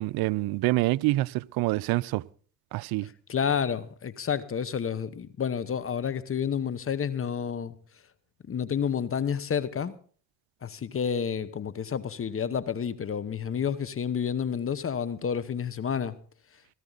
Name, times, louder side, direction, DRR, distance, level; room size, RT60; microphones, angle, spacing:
voice 1, 0.0-2.2 2.7-3.1, right 19 dB, 60° right, 0.6 m, -26 dB
voice 2, 3.3-7.7 8.5-9.9 10.6-16.2, left 7 dB, 30° left, 1.0 m, -30 dB
17.5 x 13.5 x 4.0 m
hypercardioid pair, 70°, 41 cm